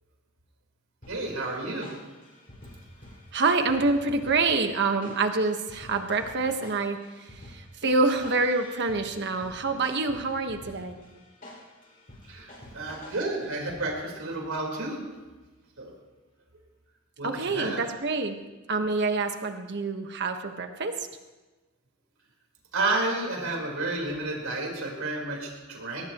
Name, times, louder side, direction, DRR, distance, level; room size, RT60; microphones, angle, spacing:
sound 1, 1.0-14.2, left 1 dB, 40° left, 5.7 m, -49 dB
voice 1, 1.1-1.9 12.3-15.2 15.8-15.9 17.2-17.8 22.7-26.1, right 2 dB, 80° right, -1 dB, 4.3 m, -31 dB
voice 2, 3.3-11.0 17.2-18.4 18.7-20.9, right 3 dB, 55° right, 6 dB, 1.4 m, -27 dB
22.5 x 18.5 x 3.1 m, 1.2 s
head